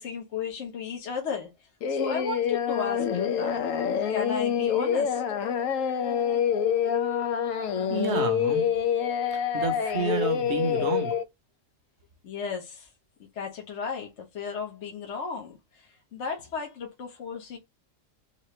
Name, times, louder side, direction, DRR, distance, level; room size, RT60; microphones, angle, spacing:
voice 1, 0.0-5.2 12.2-12.9 13.3-17.6, left 6 dB, 60° left, 1.2 m, -35 dB
Singing, 1.8-11.2, left 8 dB, 80° left, 1.0 m, -26 dB
voice 2, 7.9-8.6 9.3-11.1, right 4 dB, 60° right, 1.1 m, -30 dB
4.1 x 2.7 x 3.0 m
omnidirectional pair, 1.4 m